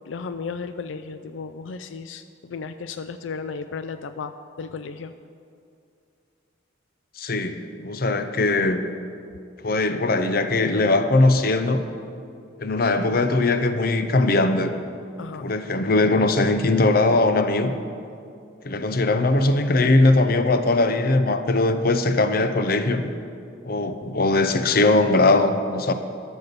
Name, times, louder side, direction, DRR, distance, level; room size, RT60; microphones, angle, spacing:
voice 1, 0.0-5.2 15.2-15.5, left 5 dB, 90° left, 10 dB, 0.4 m, -34 dB
voice 2, 7.2-8.8 9.6-11.8 12.6-14.7 15.4-17.7 18.6-23.1 23.6-25.9, left 2 dB, 50° left, 9 dB, 0.7 m, -20 dB
12.0 x 7.1 x 6.7 m, 2.4 s
head